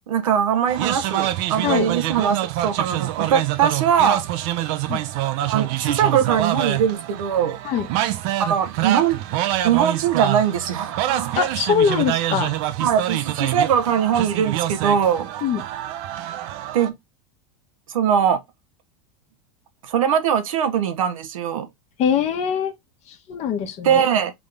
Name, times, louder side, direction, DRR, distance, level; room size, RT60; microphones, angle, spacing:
voice 1, 0.1-4.2 5.5-7.6 8.4-9.2 9.6-11.4 12.8-15.3 16.7-16.9 17.9-18.4 19.8-21.7 23.8-24.3, right 8 dB, 85° right, 1.0 m, -21 dB
sound 1, 0.7-16.9, right 13 dB, 55° right, 0.7 m, -26 dB
voice 2, 11.4-12.5 15.4-15.6 22.0-22.7 23.1-24.0, left 7 dB, 40° left, 1.2 m, -22 dB
3.8 x 3.6 x 3.6 m
hypercardioid pair, 110°, 17 cm